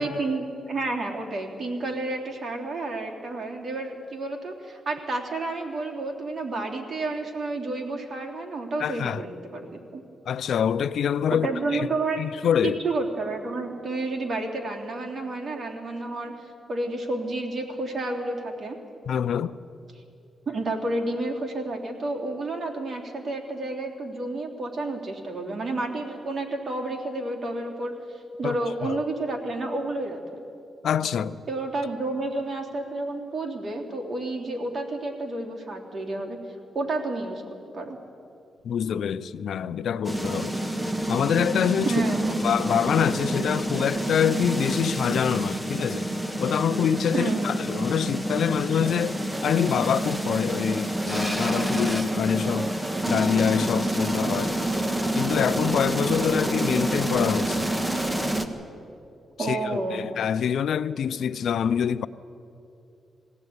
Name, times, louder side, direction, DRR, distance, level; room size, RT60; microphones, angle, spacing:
voice 1, 0.0-10.0 11.3-12.2 12.6-18.8 20.5-30.4 31.5-36.4 36.7-37.4 37.7-38.0 41.8-42.4 47.1-47.6 59.4-60.1, right 2 dB, 50° right, 3.3 m, -30 dB
voice 2, 8.8-9.2 10.3-11.5 11.7-11.9 12.2-12.8 19.1-19.6 28.4-28.6 28.8-29.0 30.8-31.4 38.6-40.6 41.1-41.9 42.4-46.1 46.4-52.7 53.1-54.6 55.2-57.7 59.4-62.1, left 8 dB, 75° left, 0.6 m, -25 dB
sound 1, 40.0-58.5, right 1 dB, 10° right, 1.6 m, -28 dB
21.0 x 16.0 x 9.5 m
cardioid pair, 80°, 0 cm